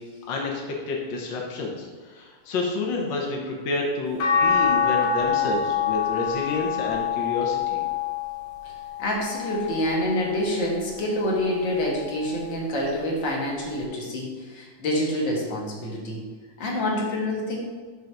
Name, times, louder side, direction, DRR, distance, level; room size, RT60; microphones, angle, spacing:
voice 1, 0.3-1.9 2.1-7.8, left 3 dB, 90° left, -1 dB, 1.0 m, -29 dB
sound 1, 4.2-10.5 11.1-12.4 13.8-13.9, left 7 dB, 70° left, 2.5 m, -26 dB
voice 2, 9.0-16.2 16.6-17.6, left 1 dB, 45° left, -3 dB, 1.8 m, -27 dB
7.2 x 3.9 x 6.6 m, 1.4 s
omnidirectional pair, 3.6 m